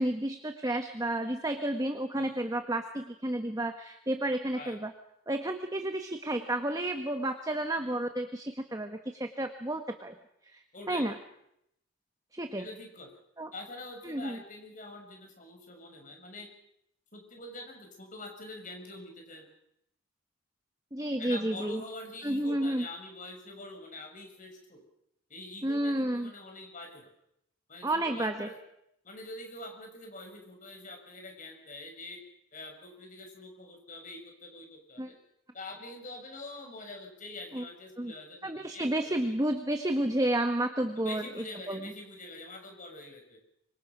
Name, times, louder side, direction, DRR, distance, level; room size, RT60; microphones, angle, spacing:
voice 1, 0.0-4.9 5.3-10.1 10.5-10.6 10.9-11.1 12.3-12.6 13.4-13.5 14.0-14.4 20.9-21.8 22.2-22.8 25.6-26.3 27.8-28.5 35.0-35.1 37.5-37.6 38.0-38.1 38.4-41.2 41.7-41.8, right 1 dB, 15° right, 6 dB, 1.3 m, -31 dB
voice 2, 10.7-11.1 12.6-13.2 13.5-16.5 17.1-19.5 21.2-24.8 25.3-27.1 27.7-28.6 29.0-32.2 32.5-35.1 35.5-39.3 41.0-43.4, left 2 dB, 40° left, 3 dB, 6.0 m, -45 dB
26.0 x 24.0 x 6.1 m, 0.78 s
head